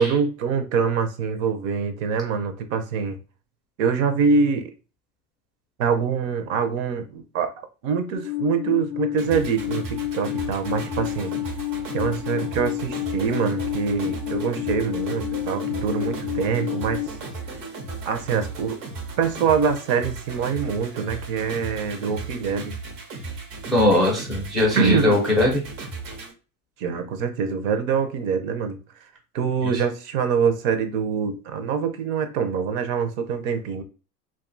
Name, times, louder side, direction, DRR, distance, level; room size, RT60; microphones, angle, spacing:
voice 1, 0.0-3.2 3.8-4.7 5.8-7.5 7.8-11.3 11.9-17.0 18.0-18.8 19.2-22.8 24.8-25.1 26.8-28.8 29.3-33.8, right 6 dB, 55° right, 0.6 m, -24 dB
Alarm, 8.1-17.1, left 15 dB, 45° left, 0.6 m, -30 dB
sound 1, 9.2-26.3, right 3 dB, 90° right, 0.9 m, -36 dB
voice 2, 23.7-25.6 29.6-29.8, left 1 dB, ahead, 0.4 m, -20 dB
2.5 x 2.3 x 2.4 m
hypercardioid pair, 110°, 48 cm